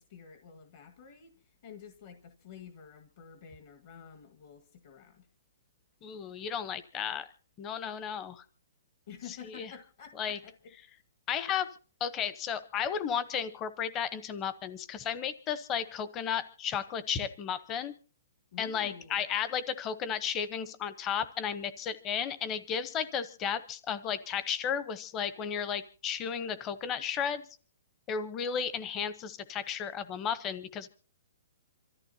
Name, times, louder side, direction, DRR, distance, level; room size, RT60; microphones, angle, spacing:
voice 1, 0.0-5.3 9.1-10.7 18.5-19.2, left 7 dB, 40° left, 6 dB, 1.7 m, -50 dB
voice 2, 6.0-7.3 7.6-8.4 9.6-9.7 10.2-10.4 11.3-11.7 12.0-17.9 18.6-27.4 28.1-30.9, left 7 dB, 15° left, 14 dB, 0.9 m, -34 dB
26.5 x 14.0 x 2.8 m, 0.40 s
hypercardioid pair, 170°, 0 cm